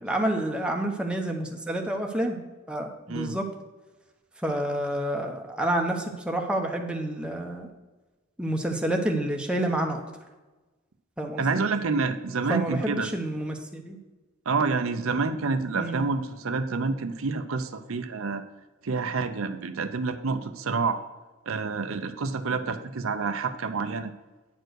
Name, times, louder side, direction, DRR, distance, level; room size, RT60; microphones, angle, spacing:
voice 1, 0.0-2.4 2.7-3.5 4.4-7.7 8.4-10.0 11.2-11.6 12.5-14.0 15.7-16.0, right 1 dB, 5° right, 2 dB, 0.9 m, -28 dB
voice 2, 11.4-13.1 14.5-18.4 18.8-21.0 21.5-24.1, right 4 dB, 75° right, 9 dB, 0.6 m, -28 dB
9.2 x 4.5 x 6.3 m, 1.2 s
head